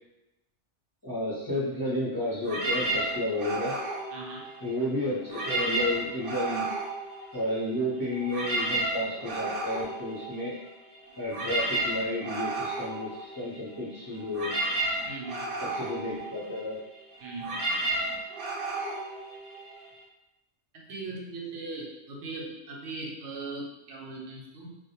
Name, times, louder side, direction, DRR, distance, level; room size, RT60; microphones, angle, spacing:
voice 1, 1.0-3.7 4.6-6.7 7.3-10.5 11.2-14.5 15.6-16.8, left 1 dB, 25° left, -10 dB, 0.6 m, -31 dB
sound 1, 2.4-4.9 5.2-7.8 8.1-20.0, right 2 dB, 55° right, 0.8 m, -33 dB
voice 2, 4.1-4.4 15.1-15.4 17.2-17.5 20.9-24.7, right 3 dB, 90° right, -1 dB, 0.9 m, -39 dB
2.1 x 2.1 x 2.8 m, 0.95 s
omnidirectional pair, 1.2 m